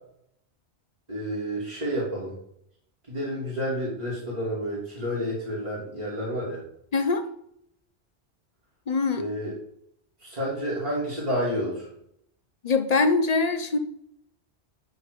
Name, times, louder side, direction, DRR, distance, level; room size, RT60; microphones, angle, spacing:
voice 1, 1.1-2.3 3.1-6.6 9.2-9.5 10.2-11.9, equal, 35° right, -7 dB, 2.7 m, -30 dB
voice 2, 6.9-7.2 8.9-9.3 12.6-13.8, left 4 dB, 40° left, 8 dB, 0.8 m, -23 dB
10.5 x 4.1 x 5.1 m, 0.74 s
omnidirectional pair, 1.1 m